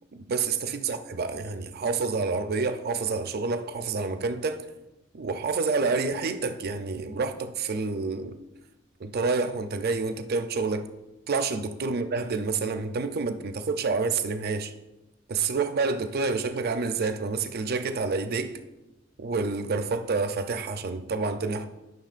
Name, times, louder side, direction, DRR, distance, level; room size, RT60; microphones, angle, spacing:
voice 1, 0.1-4.7 5.1-8.4 9.0-10.9 11.3-14.7 15.3-18.6 19.2-21.7, right 4 dB, 50° right, 0.5 m, -28 dB
12.0 x 5.9 x 2.5 m
head